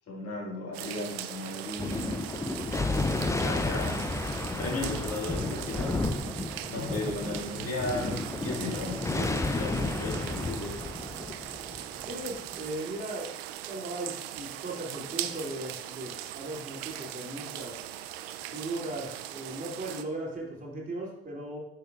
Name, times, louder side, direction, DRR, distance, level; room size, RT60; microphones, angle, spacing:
voice 1, 0.1-2.2 2.7-2.8 3.4-4.1 4.6-6.0 6.7-10.8, left 2 dB, 50° left, -1 dB, 1.9 m, -35 dB
sound 1, 0.7-20.0, right 12 dB, 90° right, 0.5 m, -40 dB
Thunder, 1.8-12.6, left 2 dB, 10° left, 0.4 m, -32 dB
voice 2, 12.0-13.3 13.6-17.7 18.5-21.6, right 2 dB, 30° right, -3 dB, 2.7 m, -37 dB
9.6 x 5.8 x 2.4 m, 0.79 s
hypercardioid pair, 65°, 30 cm